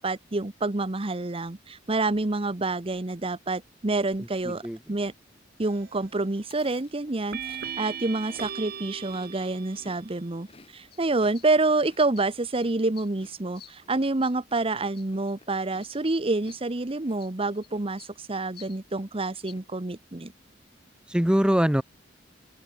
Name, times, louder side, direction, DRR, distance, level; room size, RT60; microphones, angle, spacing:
voice 1, 0.0-4.6 4.9-5.1 5.6-10.5 10.7-20.3, right 2 dB, 30° right, 1.0 m, -28 dB
voice 2, 4.2-4.8 21.1-21.8, equal, 5° right, 0.8 m, -23 dB
sound 1, 5.6-6.1 7.3-10.1, right 7 dB, 55° right, 1.0 m, -38 dB
Chewing mastication, 6.4-10.0 10.3-18.0 18.3-18.7 18.9-19.6, left 3 dB, 30° left, 3.1 m, -55 dB
sound 2, 10.6-10.7 10.9-11.0 11.3-11.7 12.1-13.1 13.5-13.8 14.2-14.6 14.9-15.3 15.8-16.0 16.5-16.6 17.2-17.7 18.0-18.1 18.5-18.8 19.4-19.5, left 10 dB, 55° left, 6.2 m, -51 dB
open air
head